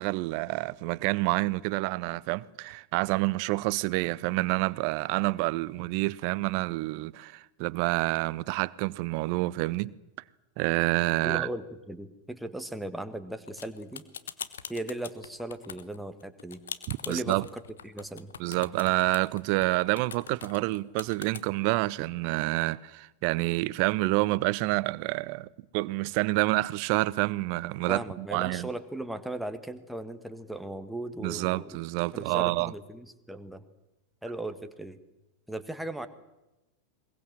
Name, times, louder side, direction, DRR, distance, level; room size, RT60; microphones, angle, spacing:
voice 1, 0.0-9.9 10.6-11.5 16.9-17.5 18.4-25.5 25.7-28.7 31.2-32.7, right 21 dB, 45° right, 0.7 m, -28 dB
voice 2, 11.2-14.0 14.7-16.6 17.0-17.4 17.8-18.3 27.9-31.8 32.1-33.6 34.2-35.0 35.5-36.1, right 1 dB, 5° right, 1.6 m, -37 dB
sound 1, 13.5-21.4, left 8 dB, 65° left, 1.3 m, -42 dB
22.0 x 21.5 x 7.6 m
figure-of-eight pair, 90°, 0 cm